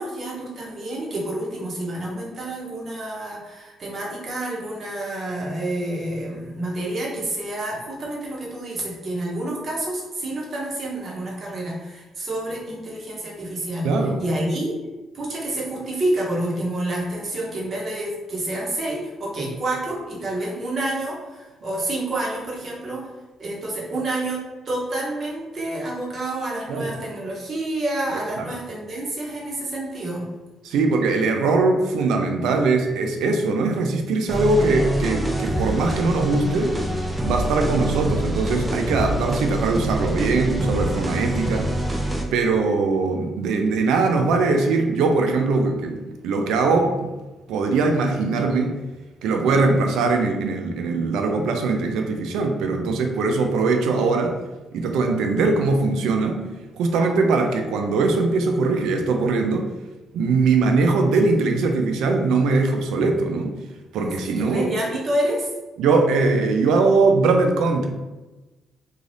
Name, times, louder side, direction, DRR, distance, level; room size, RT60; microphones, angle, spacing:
voice 1, 0.0-14.8 15.1-23.1 23.4-30.3 35.5-35.7 63.9-65.5, right 1 dB, 45° right, -4 dB, 1.0 m, -28 dB
voice 2, 13.8-14.2 26.7-26.9 28.4-28.5 30.6-36.8 37.2-41.7 42.3-47.1 47.5-48.8 49.2-54.4 54.7-56.4 56.8-59.7 60.1-63.5 63.9-64.7 65.8-67.9, right 3 dB, 85° right, 4 dB, 0.4 m, -21 dB
sound 1, 34.3-42.2, right 1 dB, 15° right, 0.5 m, -26 dB
2.6 x 2.4 x 3.2 m, 1.2 s
cardioid pair, 90°, 0 cm